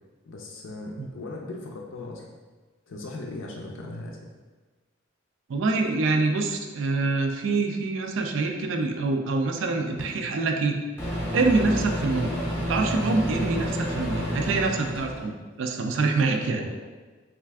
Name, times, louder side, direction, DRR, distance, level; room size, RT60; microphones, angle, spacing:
voice 1, 0.3-2.3 2.9-4.2 16.2-16.9, left 2 dB, 70° left, 0 dB, 0.4 m, -38 dB
voice 2, 5.5-10.8 11.3-12.3 12.7-16.6, right 3 dB, 70° right, 4 dB, 0.4 m, -25 dB
Microwave oven, 10.0-10.1 11.0-15.2, equal, 10° left, 0.6 m, -29 dB
3.2 x 2.5 x 3.4 m, 1.3 s
head